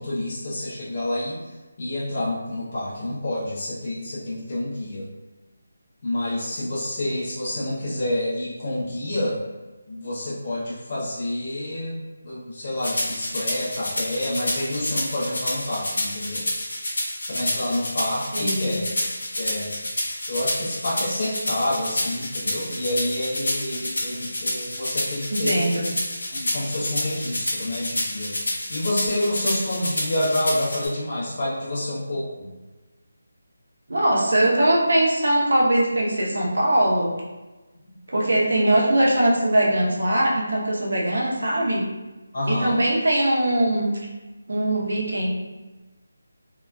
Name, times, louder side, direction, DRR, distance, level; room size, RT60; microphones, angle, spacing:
voice 1, 0.0-1.4 1.8-5.1 6.0-9.4 9.9-16.4 17.3-19.1 19.4-19.7 20.3-25.7 26.3-32.5 42.3-42.8, left 1 dB, 30° left, -8 dB, 0.6 m, -28 dB
sound 1, 12.8-30.9, left 1 dB, 85° left, 0.9 m, -29 dB
voice 2, 18.3-18.8 25.3-25.9 33.9-37.1 38.1-41.9 42.5-43.9 44.5-45.3, right 1 dB, 85° right, -3 dB, 0.8 m, -21 dB
2.8 x 2.3 x 2.2 m, 1.2 s
figure-of-eight pair, 180°, 0 cm